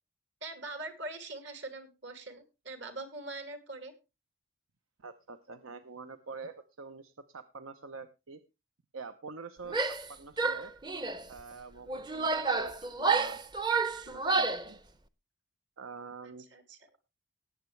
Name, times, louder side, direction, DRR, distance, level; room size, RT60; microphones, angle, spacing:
voice 1, 0.4-3.9 16.2-16.8, right 2 dB, 60° right, 7 dB, 2.5 m, -43 dB
voice 2, 5.0-8.4 8.9-10.7 11.3-13.4 14.0-14.8 15.8-16.5, right 4 dB, 85° right, 10 dB, 0.8 m, -46 dB
Female speech woman speaking / Yell, 9.7-10.1 10.4-11.2 11.9-14.7, right 4 dB, 20° right, 0.6 m, -30 dB
19.0 x 8.0 x 3.2 m, 0.27 s
head